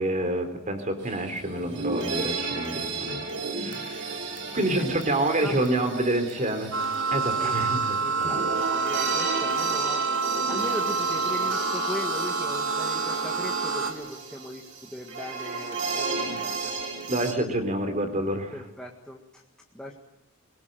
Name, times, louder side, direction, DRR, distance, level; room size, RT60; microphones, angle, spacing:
voice 1, 0.0-3.2 3.5-6.7 7.1-8.3 17.1-18.5, right 1 dB, 35° right, 7 dB, 3.8 m, -28 dB
sound 1, 1.1-1.2 1.4-17.3, right 4 dB, 55° right, 3.5 m, -34 dB
voice 2, 4.5-6.6 7.4-7.6 8.0-16.7 18.5-19.4 19.7-19.9, left 1 dB, 5° left, -1 dB, 1.7 m, -39 dB
sound 2, 6.7-13.9, right 4 dB, 75° right, 3.0 m, -27 dB
23.0 x 19.5 x 9.1 m, 0.88 s
head